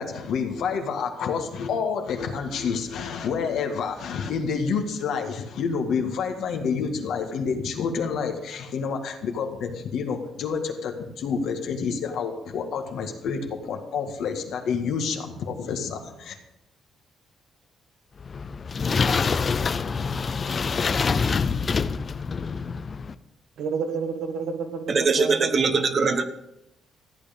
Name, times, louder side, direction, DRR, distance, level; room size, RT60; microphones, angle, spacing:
voice 1, 0.0-16.4, left 6 dB, 75° left, 4 dB, 1.8 m, -28 dB
sound 1, 18.2-23.1, left 5 dB, 40° left, 0.6 m, -26 dB
voice 2, 23.6-25.6, right 5 dB, 75° right, 6 dB, 1.5 m, -30 dB
voice 3, 24.9-26.2, right 4 dB, 40° right, 9 dB, 1.2 m, -21 dB
14.5 x 8.8 x 5.3 m, 0.86 s
cardioid pair, 90°, 0 cm